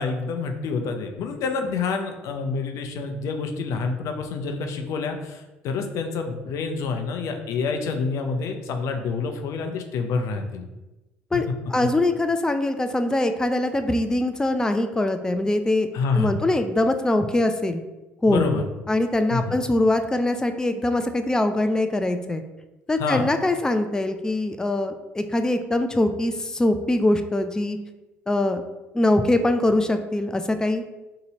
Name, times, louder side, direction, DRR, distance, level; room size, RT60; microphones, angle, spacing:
voice 1, 0.0-10.7 15.9-16.4 18.3-18.7 19.3-19.6 23.0-23.3, left 4 dB, 65° left, 5 dB, 0.5 m, -27 dB
voice 2, 11.3-15.9 16.1-17.8 18.2-18.5 18.9-22.4 22.9-27.8 28.3-28.6 28.9-30.8, left 1 dB, 10° left, 8 dB, 0.4 m, -23 dB
2.8 x 2.6 x 3.9 m, 1.0 s
hypercardioid pair, 65°, 6 cm